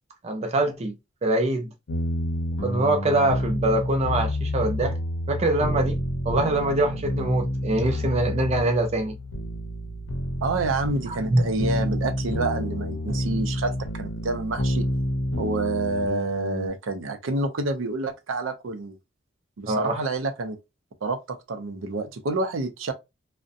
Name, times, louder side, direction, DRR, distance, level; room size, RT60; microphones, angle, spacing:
voice 1, 0.2-0.9 1.2-1.7 2.6-5.0 5.3-6.0 6.3-9.2 11.3-11.4 19.7-20.0, right 1 dB, 35° right, 0.4 m, -23 dB
sound 1, 1.9-16.7, left 1 dB, 80° left, 0.6 m, -29 dB
voice 2, 10.4-14.9 15.4-19.0 19.6-20.6 21.0-22.9, right 3 dB, 85° right, 0.5 m, -28 dB
2.5 x 2.1 x 2.6 m
head